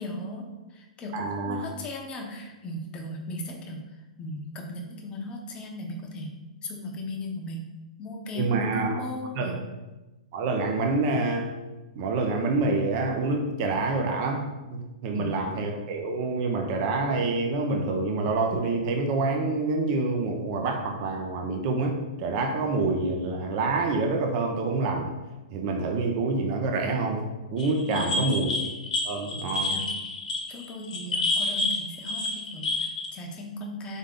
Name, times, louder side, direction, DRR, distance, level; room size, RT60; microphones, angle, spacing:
voice 1, 0.0-3.8 4.2-6.3 6.6-7.7 8.0-9.6 15.1-15.3 27.9-28.3 29.7-29.9 30.5-34.0, left 1 dB, 25° left, 1 dB, 0.8 m, -37 dB
voice 2, 1.1-1.7 8.4-9.0 9.4-9.5 10.3-11.5 12.0-14.4 14.7-25.2 25.5-28.5 29.0-29.7, right 3 dB, 45° right, 3 dB, 0.6 m, -27 dB
sound 1, 27.6-33.1, left 2 dB, 70° left, 1.0 m, -29 dB
3.7 x 3.6 x 3.7 m, 1.1 s
hypercardioid pair, 130°, 4 cm